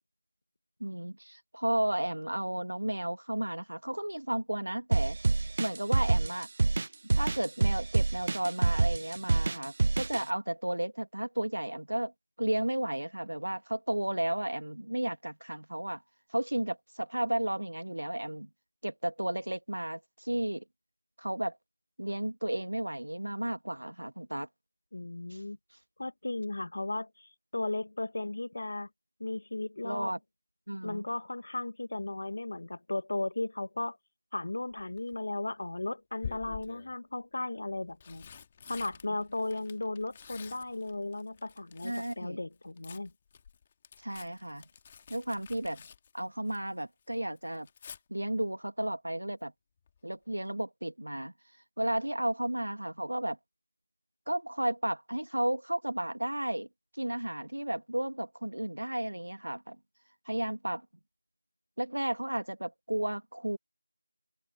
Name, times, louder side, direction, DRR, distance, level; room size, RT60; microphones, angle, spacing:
voice 1, 0.8-5.2 5.6-6.5 7.1-12.1 12.4-16.0 16.3-18.5 18.8-20.6 21.2-21.6 22.0-24.5 25.3-25.4 29.8-30.2 30.7-31.0 39.1-39.2 41.8-42.4 44.0-44.6 45.1-45.8 46.1-47.7 48.1-49.5 50.0-51.3 51.8-53.4 54.3-56.7 56.9-59.8 60.3-60.9 61.8-63.6, right 1 dB, 80° right, 1.8 m, -33 dB
sound 1, 4.9-10.2, right 3 dB, 20° right, 0.4 m, -26 dB
voice 2, 24.9-25.6 26.0-28.9 29.2-30.1 30.8-34.0 34.3-38.3 38.7-43.1, left 2 dB, 35° left, 1.3 m, -36 dB
Tearing, 34.7-35.2 36.2-36.9 37.7-42.2 42.5-46.8 47.1-48.0 49.9-50.1 50.4-50.5, left 7 dB, 10° left, 2.1 m, -48 dB
figure-of-eight pair, 175°, 0 cm